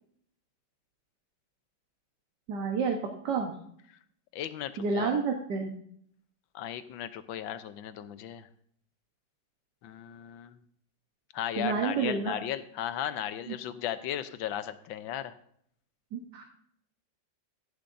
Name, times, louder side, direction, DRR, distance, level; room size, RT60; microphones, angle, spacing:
voice 1, 2.5-3.0 3.2-3.6 4.8-5.7 11.6-12.4 13.5-13.6 16.1-16.4, right 5 dB, 65° right, 2 dB, 1.8 m, -29 dB
voice 2, 4.3-5.1 6.5-8.5 9.8-10.6 11.3-15.3, left 10 dB, 85° left, 12 dB, 1.5 m, -36 dB
15.0 x 10.5 x 2.6 m, 0.66 s
omnidirectional pair, 2.0 m